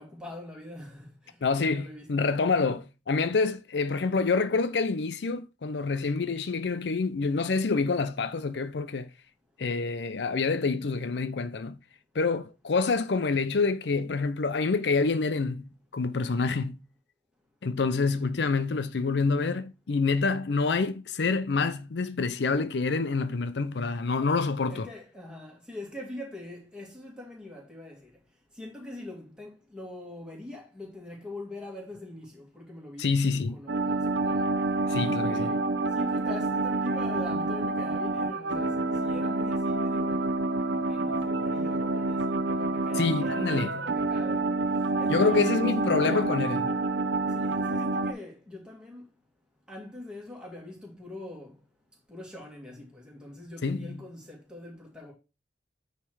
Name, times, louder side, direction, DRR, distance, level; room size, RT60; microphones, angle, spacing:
voice 1, 0.0-2.1 24.7-28.1 28.6-34.5 34.9-35.6 35.9-40.3 40.8-44.5 45.0-45.4 45.7-46.3 47.3-49.1 49.7-51.5 52.1-55.1, left 1 dB, 5° right, 2.4 m, -43 dB
voice 2, 1.4-9.1 9.6-11.8 12.1-16.8 17.6-24.9 33.0-33.6 34.9-35.5 43.0-43.8 45.1-46.7 53.6-54.0, left 4 dB, 75° left, 0.5 m, -27 dB
sound 1, 33.7-48.1, right 2 dB, 80° right, 0.7 m, -28 dB
9.0 x 3.2 x 4.7 m
head